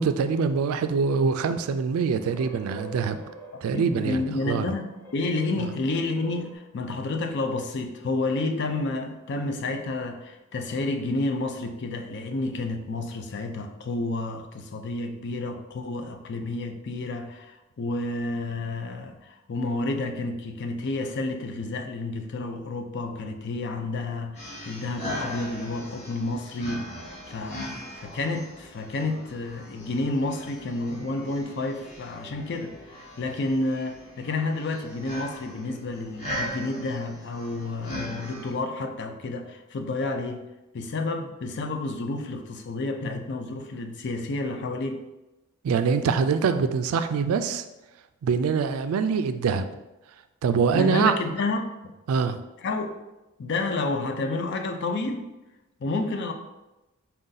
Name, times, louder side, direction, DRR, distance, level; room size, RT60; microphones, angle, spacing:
voice 1, 0.0-3.1 3.6-4.7 45.6-47.6 48.2-49.7 50.4-51.1 52.1-52.4, right 5 dB, 85° right, 10 dB, 0.3 m, -24 dB
sound 1, 1.0-6.5, right 1 dB, 10° left, 0.6 m, -46 dB
voice 2, 3.5-26.9 27.3-40.4 40.7-45.0 50.7-51.9 52.6-53.0 53.4-55.3 55.8-56.3, left 2 dB, 55° left, 6 dB, 0.4 m, -30 dB
sound 2, 24.3-38.5, equal, 30° left, 1.1 m, -39 dB
4.3 x 2.6 x 3.9 m, 1.0 s
head